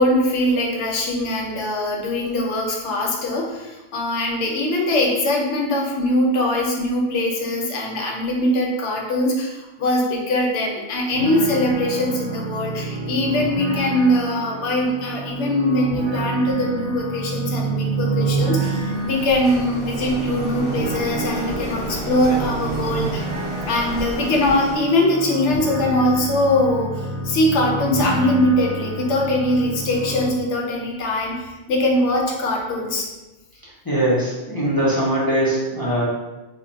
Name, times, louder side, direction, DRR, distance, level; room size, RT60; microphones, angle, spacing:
voice 1, 0.0-23.3 23.6-33.1, left 1 dB, 80° left, -1 dB, 0.9 m, -22 dB
sound 1, 11.1-30.3, right 3 dB, 45° right, 0.7 m, -28 dB
Printer, 18.6-24.8, right 1 dB, 15° right, 0.8 m, -32 dB
voice 2, 33.8-36.0, right 1 dB, 30° left, -8 dB, 0.4 m, -21 dB
2.2 x 2.0 x 3.8 m, 1.1 s
omnidirectional pair, 1.2 m